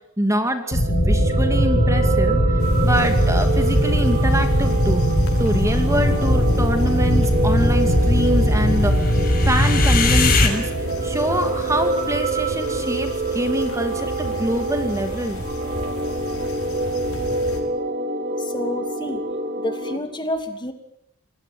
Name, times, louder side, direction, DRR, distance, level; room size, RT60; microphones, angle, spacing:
voice 1, 0.2-5.0 5.4-9.1 9.5-10.7 11.0-15.4, right 1 dB, 15° right, 6 dB, 2.5 m, -25 dB
sound 1, 0.7-10.5, equal, 45° left, 6.0 m, -19 dB
sound 2, 0.7-20.0, right 2 dB, 40° right, 2.9 m, -27 dB
sound 3, 2.6-17.6, left 1 dB, 75° left, 5.7 m, -32 dB
voice 2, 18.4-19.2 19.6-20.7, left 1 dB, 20° left, 7 dB, 2.7 m, -29 dB
27.0 x 20.5 x 9.4 m, 0.75 s
head